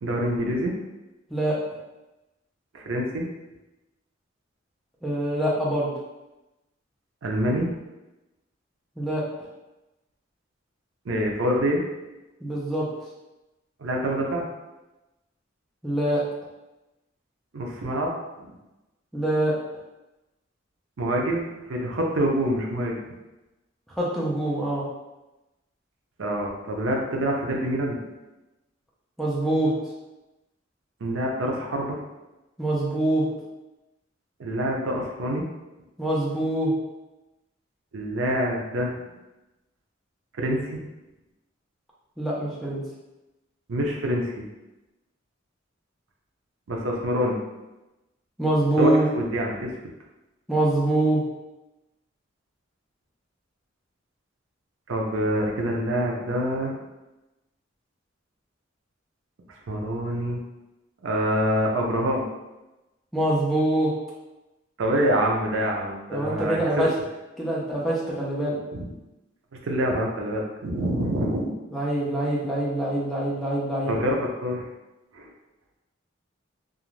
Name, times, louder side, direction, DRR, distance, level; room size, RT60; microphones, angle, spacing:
voice 1, 0.0-0.8 2.7-3.3 7.2-7.8 11.1-11.8 13.8-14.5 17.5-18.5 21.0-21.4 21.7-23.0 26.2-28.1 31.0-32.0 34.4-35.4 37.9-39.0 40.4-40.8 43.7-44.5 46.7-47.4 48.8-49.7 54.9-56.8 59.7-60.4 61.0-62.2 64.8-66.8 68.7-68.9 69.5-71.5 73.9-74.7 75.1-75.3, equal, 85° right, 0 dB, 0.6 m, -26 dB
voice 2, 5.0-5.9 9.0-9.2 12.4-12.9 15.8-16.2 19.1-19.5 24.0-24.9 29.2-29.7 32.6-33.2 36.0-36.7 42.2-42.8 48.4-49.1 50.5-51.2 63.1-63.9 66.1-66.9 67.4-68.6 71.7-73.9, right 1 dB, ahead, -7 dB, 0.6 m, -24 dB
2.4 x 2.4 x 3.1 m, 1.0 s
head